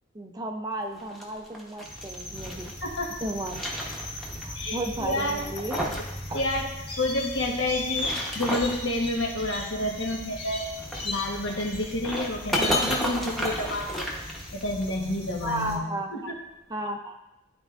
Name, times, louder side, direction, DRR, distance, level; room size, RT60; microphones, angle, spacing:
voice 1, 0.1-2.7 3.2-3.6 4.4-5.8 6.3-6.4 15.4-16.3 16.7-17.2, right 1 dB, 20° right, 3 dB, 0.5 m, -33 dB
sound 1, 0.9-2.7 3.2-4.4 4.7-4.8 5.3-6.1 6.4-6.5 7.7-8.8 10.8-14.8, equal, ahead, 0.9 m, -32 dB
sound 2, 1.8-15.8, left 2 dB, 30° left, 1.8 m, -37 dB
voice 2, 4.5-5.5 6.3-6.7 7.0-10.7 11.0-14.1 14.5-15.8 16.1-16.3, left 1 dB, 65° left, 0 dB, 1.3 m, -29 dB
12.0 x 4.5 x 2.4 m, 0.95 s
head